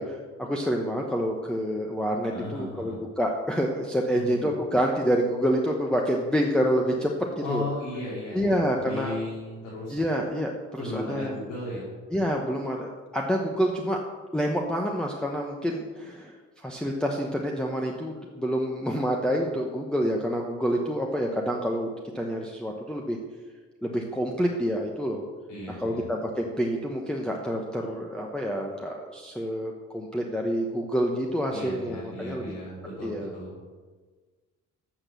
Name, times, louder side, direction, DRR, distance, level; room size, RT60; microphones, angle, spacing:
voice 1, 0.0-7.1 7.4-7.7 8.3-9.2 9.9-11.4 12.1-14.0 14.3-23.2 23.8-25.2 25.7-32.5 33.0-33.3, equal, 5° left, 0 dB, 1.0 m, -28 dB
voice 2, 2.3-3.0 4.1-4.4 7.4-10.0 10.8-11.9 25.5-26.1 31.5-33.6, left 1 dB, 85° left, -7 dB, 3.1 m, -36 dB
7.9 x 6.1 x 6.8 m, 1.4 s
cardioid pair, 90°, 30 cm